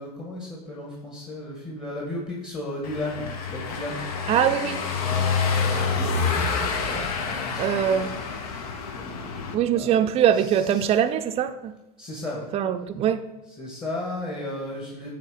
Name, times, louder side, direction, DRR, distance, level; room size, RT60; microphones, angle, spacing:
voice 1, 0.0-4.0 5.0-7.8 8.1-8.2 8.9-10.2 10.8-10.9 12.0-12.5 13.6-15.1, left 1 dB, 25° left, 1.8 m, -35 dB
Car passing by / Engine, 2.8-9.6, left 5 dB, 65° left, 1.0 m, -27 dB
voice 2, 4.3-4.8 7.6-8.2 9.5-11.7 12.5-13.3, right 9 dB, 30° right, 0.5 m, -22 dB
8.2 x 3.3 x 5.6 m
hypercardioid pair, 95°, 20 cm